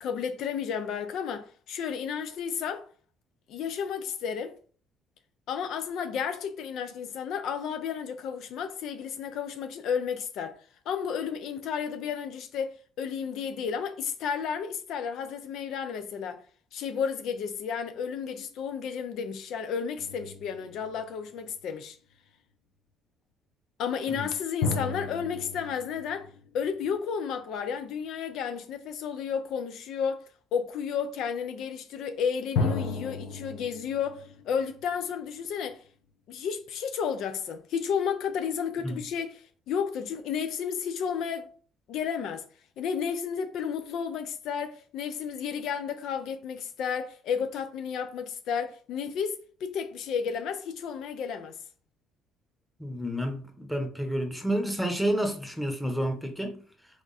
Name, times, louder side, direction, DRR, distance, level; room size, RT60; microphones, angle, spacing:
voice 1, 0.0-2.8 3.5-4.5 5.5-10.5 10.9-12.7 13.0-16.4 16.7-22.0 23.8-26.3 26.5-30.2 30.5-35.8 36.3-41.5 41.9-42.4 42.8-51.6, left 7 dB, 70° left, 0.5 m, -32 dB
sound 1, 20.0-21.6 24.6-27.3 32.5-35.5, left 4 dB, 90° left, 1.0 m, -34 dB
voice 2, 52.8-56.6, right 1 dB, 5° left, 1.1 m, -30 dB
3.6 x 3.4 x 4.1 m
supercardioid pair, 85°, 0 cm